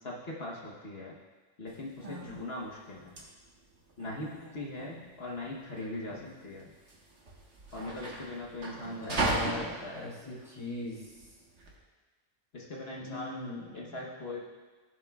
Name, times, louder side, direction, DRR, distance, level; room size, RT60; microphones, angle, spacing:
voice 1, 0.0-1.1 1.6-3.2 4.0-6.7 7.7-10.1 12.5-13.4 13.7-14.4, left 1 dB, 50° left, -3 dB, 1.2 m, -40 dB
sound 1, 1.7-11.7, right 2 dB, 60° right, 1.6 m, -38 dB
voice 2, 8.7-11.0 13.0-14.0, left 3 dB, 25° left, -6 dB, 2.6 m, -41 dB
15.5 x 7.3 x 2.3 m, 1.4 s
omnidirectional pair, 1.4 m